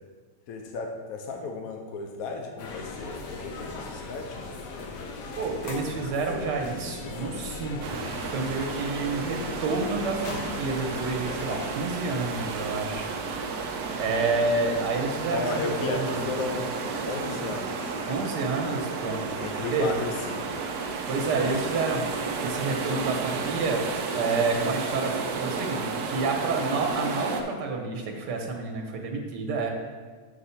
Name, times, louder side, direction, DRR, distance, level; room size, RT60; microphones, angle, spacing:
voice 1, 0.5-4.5 15.3-16.7 17.1-18.0 19.2-20.6 21.3-21.6, left 3 dB, 65° left, 3 dB, 1.1 m, -34 dB
sound 1, 2.6-11.7, left 3 dB, 85° left, 1.5 m, -38 dB
voice 2, 5.4-13.1 14.0-16.2 18.1-19.3 19.6-19.9 21.1-22.0 22.4-23.9 24.1-29.7, right 3 dB, 90° right, 2 dB, 1.6 m, -29 dB
sound 2, 7.8-27.4, right 4 dB, 70° right, 1.2 m, -32 dB
6.7 x 4.7 x 5.7 m, 1.5 s
omnidirectional pair, 1.8 m